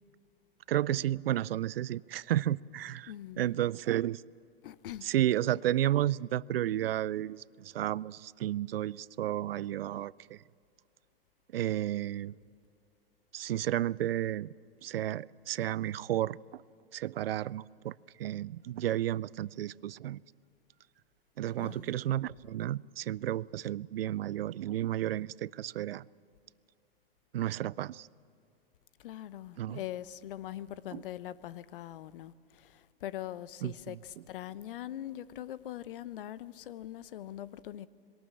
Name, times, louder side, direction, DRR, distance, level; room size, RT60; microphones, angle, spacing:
voice 1, 0.7-4.2 5.0-10.4 11.5-12.4 13.3-14.5 14.8-16.6 16.9-17.9 18.2-20.2 21.4-26.1 27.3-28.1 29.6-29.8 30.9-31.0 33.6-34.2, right 12 dB, 75° right, 0.5 m, -32 dB
voice 2, 3.1-3.5 4.6-5.1 21.6-21.9 29.0-37.9, left 12 dB, 65° left, 0.9 m, -42 dB
22.5 x 18.0 x 7.4 m
hypercardioid pair, 105°, 29 cm